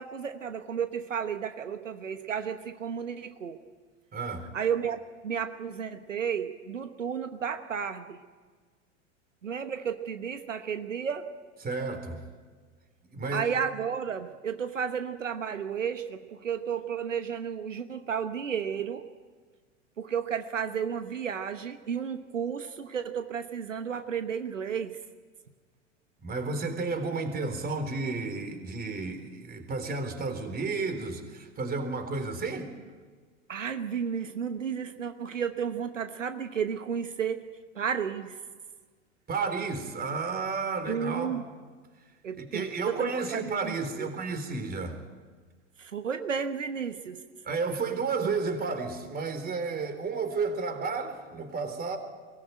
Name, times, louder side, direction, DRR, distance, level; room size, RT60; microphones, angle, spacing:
voice 1, 0.0-3.6 4.5-8.2 9.4-11.3 13.3-19.0 20.0-25.0 33.5-37.4 37.7-38.4 40.9-41.4 42.2-44.1 45.8-47.2 48.2-48.3, right 7 dB, 85° right, 9 dB, 1.2 m, -32 dB
voice 2, 4.1-4.5 11.6-12.2 13.1-13.5 26.2-32.7 39.3-41.4 42.4-45.0 47.4-52.0, right 4 dB, 25° right, 7 dB, 3.8 m, -32 dB
22.5 x 18.5 x 9.2 m, 1.5 s
hypercardioid pair, 90°, 37 cm